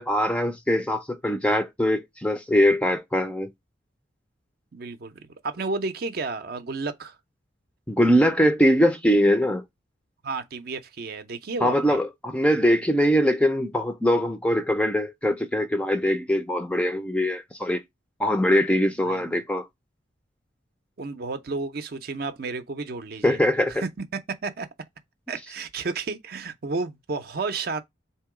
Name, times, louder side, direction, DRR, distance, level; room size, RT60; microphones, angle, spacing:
voice 1, 0.0-3.5 7.9-9.6 11.6-17.8 18.2-19.7 23.2-23.8, equal, 5° left, 0.4 m, -22 dB
voice 2, 4.7-7.2 10.2-12.0 19.0-19.3 21.0-23.4 23.7-24.7 25.3-27.8, right 3 dB, 55° right, 0.5 m, -32 dB
3.8 x 2.8 x 4.7 m
head